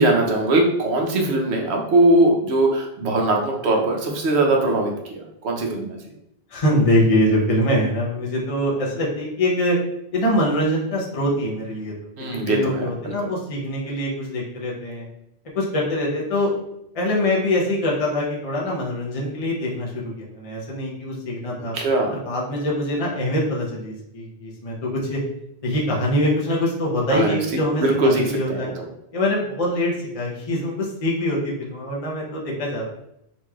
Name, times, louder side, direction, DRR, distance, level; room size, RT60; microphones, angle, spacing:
voice 1, 0.0-6.0 12.2-12.9 13.2-13.3 21.7-22.2 27.1-27.4 27.8-28.8, right 2 dB, 80° right, 1 dB, 1.0 m, -20 dB
voice 2, 6.5-9.8 10.1-11.9 12.2-15.0 15.5-16.5 16.9-21.7 22.1-25.2 25.6-28.7 29.1-32.9, left 1 dB, 35° left, -4 dB, 0.8 m, -23 dB
4.0 x 3.0 x 2.3 m, 0.79 s
omnidirectional pair, 1.1 m